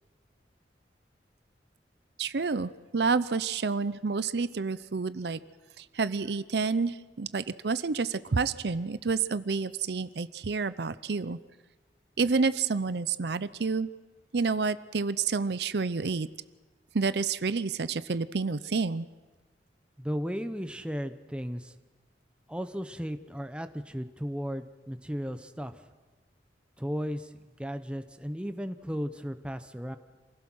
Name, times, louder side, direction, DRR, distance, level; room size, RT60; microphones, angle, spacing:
voice 1, 2.2-5.4 5.8-11.4 12.2-13.9 14.3-16.3 16.9-19.1, right 4 dB, 65° right, 14 dB, 0.6 m, -29 dB
voice 2, 20.0-21.7 22.5-25.8 26.8-27.3 27.6-30.0, equal, 5° right, 9 dB, 0.9 m, -35 dB
27.5 x 16.5 x 6.3 m, 1.3 s
head